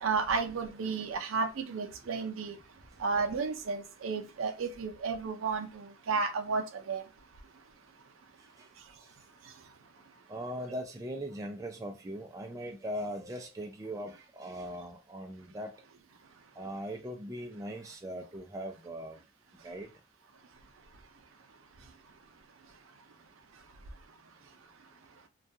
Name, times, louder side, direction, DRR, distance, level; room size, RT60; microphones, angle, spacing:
voice 1, 0.0-2.5 3.0-7.0, right 4 dB, 80° right, 0.5 m, -32 dB
voice 2, 10.3-15.7 16.6-19.2 19.6-19.9, equal, 15° right, 0.3 m, -40 dB
2.3 x 2.3 x 2.6 m
head